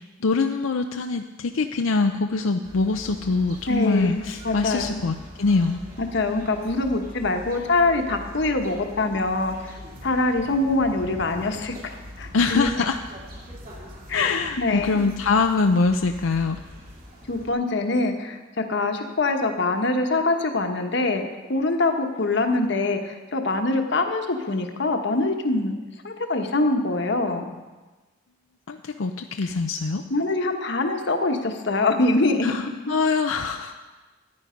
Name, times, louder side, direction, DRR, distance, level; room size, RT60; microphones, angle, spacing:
voice 1, 0.0-5.8 12.3-13.0 14.1-16.6 28.7-30.0 32.4-33.8, left 4 dB, 85° left, 5 dB, 0.6 m, -24 dB
sound 1, 2.6-17.5, left 1 dB, 45° right, 2.7 m, -42 dB
voice 2, 3.7-5.0 6.0-12.7 14.1-15.1 17.3-25.8 26.0-27.5 29.4-29.5 30.1-32.5, left 2 dB, 60° left, 4 dB, 1.3 m, -24 dB
14.0 x 9.8 x 5.2 m, 1.2 s
head